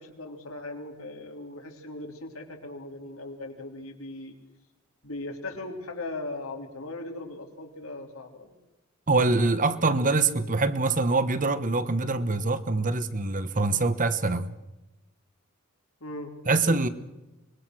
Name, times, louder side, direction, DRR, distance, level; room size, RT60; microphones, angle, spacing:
voice 1, 0.0-4.3 5.0-8.6 16.0-16.3, left 2 dB, 85° left, 3.6 m, -38 dB
voice 2, 9.1-14.5 16.5-16.9, right 3 dB, 40° right, 1.2 m, -24 dB
25.0 x 21.5 x 6.3 m
head